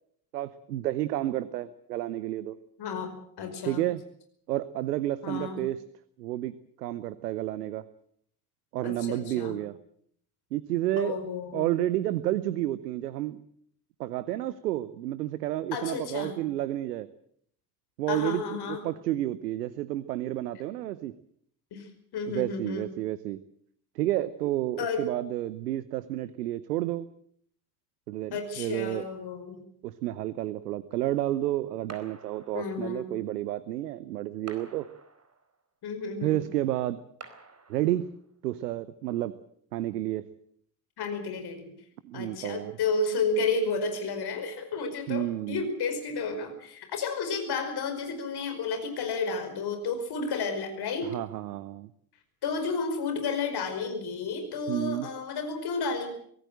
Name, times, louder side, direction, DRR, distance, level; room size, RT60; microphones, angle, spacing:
voice 1, 0.3-2.6 3.6-4.0 4.5-5.8 6.2-7.8 8.7-9.8 10.5-11.2 11.5-13.4 14.0-17.1 18.0-21.1 22.3-23.4 23.9-27.1 28.1-29.1 29.8-34.9 36.2-37.0 37.7-38.1 38.4-39.3 39.7-40.2 42.0-42.7 45.1-45.7 51.0-51.9 54.7-55.1, right 14 dB, 75° right, 16 dB, 0.9 m, -30 dB
voice 2, 2.8-3.1 3.4-3.8 5.2-5.6 8.8-9.6 11.0-11.8 15.7-16.4 18.1-18.8 21.7-21.9 22.1-22.9 24.8-25.1 28.3-29.6 32.5-33.1 35.8-36.5 41.0-41.7 42.1-51.1 52.4-56.1, left 4 dB, 50° left, 7 dB, 5.3 m, -32 dB
sound 1, 31.9-33.0 34.5-35.6 37.2-38.2, right 4 dB, 30° right, 4.5 m, -49 dB
24.5 x 18.0 x 7.7 m, 0.66 s
figure-of-eight pair, 50°, 48 cm